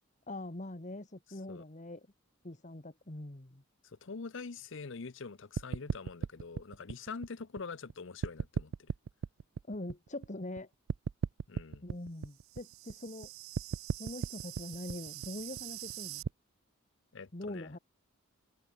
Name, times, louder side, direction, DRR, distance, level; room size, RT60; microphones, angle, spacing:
voice 1, 0.3-2.1 2.4-3.6 9.7-10.7 11.8-13.3 13.9-16.2 17.3-17.8, left 1 dB, 35° left, 1.6 m, -43 dB
voice 2, 3.8-8.9 11.5-11.9 17.1-17.8, left 4 dB, 60° left, 0.7 m, -44 dB
sound 1, 5.6-7.9 8.2-10.6 10.9-16.3, right 6 dB, 85° right, 0.4 m, -38 dB
head